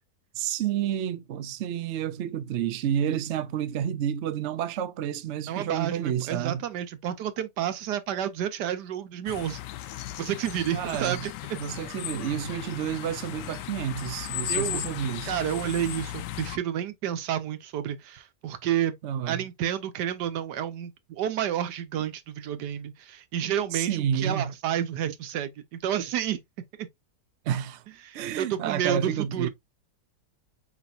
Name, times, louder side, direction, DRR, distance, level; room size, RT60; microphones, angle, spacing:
voice 1, 0.3-6.6 10.7-11.3 11.6-15.3 19.0-19.5 23.7-24.5 27.4-27.8 28.1-29.5, right 9 dB, 60° right, 0.7 m, -30 dB
voice 2, 5.5-9.6 10.2-11.6 14.5-14.8 15.3-19.0 19.3-26.4 28.0-29.5, right 10 dB, 80° right, 1.3 m, -30 dB
sound 1, 9.3-16.6, left 13 dB, 90° left, 1.2 m, -36 dB
5.1 x 4.1 x 2.4 m
omnidirectional pair, 1.8 m